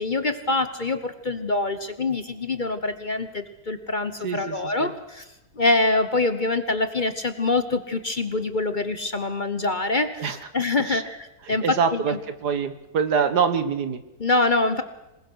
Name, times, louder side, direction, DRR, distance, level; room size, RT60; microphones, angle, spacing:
voice 1, 0.0-5.3 5.5-12.2 14.2-14.8, left 2 dB, 35° left, 10 dB, 1.1 m, -25 dB
voice 2, 4.2-4.9 10.2-10.4 10.9-11.0 11.5-12.2 12.4-14.0, right 6 dB, 80° right, 10 dB, 1.9 m, -25 dB
26.5 x 20.5 x 6.4 m, 0.95 s
omnidirectional pair, 1.7 m